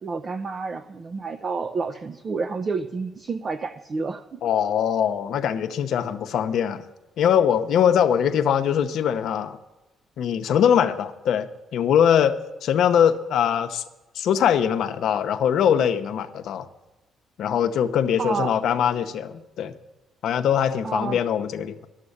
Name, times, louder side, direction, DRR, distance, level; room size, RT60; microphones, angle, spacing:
voice 1, 0.0-4.4 18.2-18.6 20.8-21.2, right 4 dB, 40° right, 7 dB, 0.6 m, -29 dB
voice 2, 4.4-6.8 7.2-9.6 10.2-12.4 12.6-13.8 14.2-16.7 17.4-19.7 20.2-21.9, left 8 dB, 75° left, 8 dB, 0.8 m, -22 dB
11.5 x 7.4 x 9.9 m, 1.0 s
cardioid pair, 90°, 0 cm